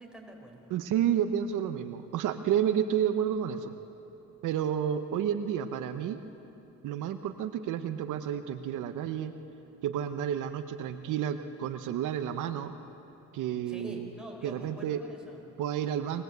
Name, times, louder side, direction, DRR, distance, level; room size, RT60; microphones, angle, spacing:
voice 1, 0.0-0.7 13.7-15.4, right 1 dB, 5° right, 0 dB, 5.0 m, -46 dB
voice 2, 0.7-3.7 4.4-6.2 6.8-9.3 9.8-12.7 13.3-14.1 14.4-15.0 15.6-16.2, right 9 dB, 85° right, 9 dB, 1.0 m, -30 dB
21.0 x 20.5 x 8.1 m, 2.9 s
cardioid pair, 90°, 30 cm